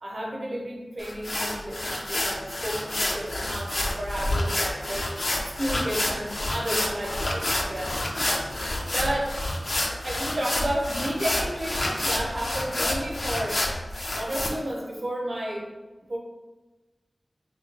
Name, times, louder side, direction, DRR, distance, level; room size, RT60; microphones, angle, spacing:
voice 1, 0.0-5.1 5.4-8.1 8.9-9.4 9.8-13.6 14.1-15.7 16.0-16.2, right 1 dB, 65° right, -2 dB, 0.7 m, -32 dB
sound 1, 1.0-14.5, left 1 dB, 60° left, 0.5 m, -28 dB
3.6 x 2.3 x 3.2 m, 1.2 s
wide cardioid pair, 45°, 0 cm